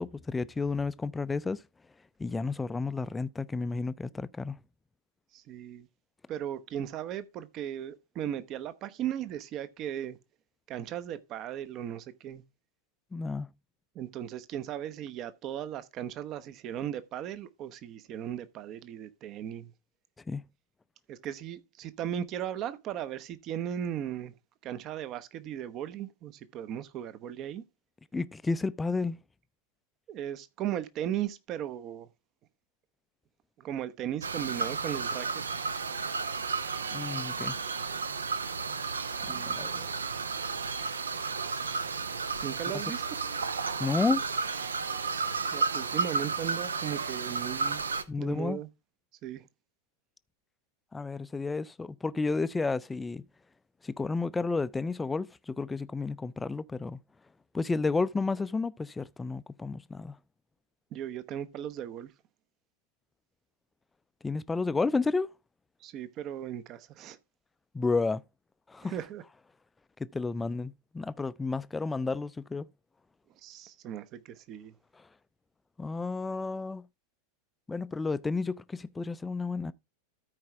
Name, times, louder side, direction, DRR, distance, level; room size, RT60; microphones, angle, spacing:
voice 1, 0.0-1.6 2.2-4.6 13.1-13.5 20.3-20.4 28.1-29.2 36.9-37.6 39.5-39.9 43.8-44.2 48.1-48.6 50.9-53.2 53.8-57.0 57.5-60.2 64.2-65.3 67.7-68.2 68.7-68.9 70.0-72.7 75.8-76.8 77.7-79.7, left 4 dB, 10° left, 0.4 m, -31 dB
voice 2, 5.3-5.9 6.3-10.2 10.7-12.4 13.9-19.7 21.1-24.4 24.6-27.6 30.1-32.1 33.6-35.3 39.0-39.7 42.4-43.4 45.5-47.9 48.2-48.7 49.2-49.5 60.9-62.1 65.8-67.2 68.8-69.2 73.4-74.7, right 10 dB, 35° right, 0.8 m, -37 dB
sound 1, 34.2-48.0, right 4 dB, 70° right, 0.7 m, -32 dB
13.5 x 4.8 x 3.4 m
figure-of-eight pair, 90°, 0 cm